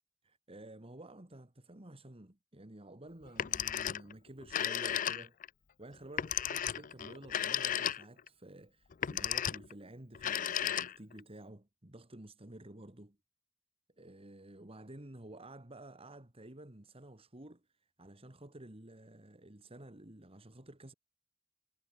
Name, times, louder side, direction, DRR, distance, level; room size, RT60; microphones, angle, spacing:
voice 1, 0.2-5.4 5.8-13.2 14.0-20.9, right 1 dB, 30° right, 1.9 m, -52 dB
Telephone, 3.3-4.1 4.4-5.5 6.2-8.3 8.9-9.7 10.2-11.2, left 10 dB, 40° left, 0.4 m, -34 dB
head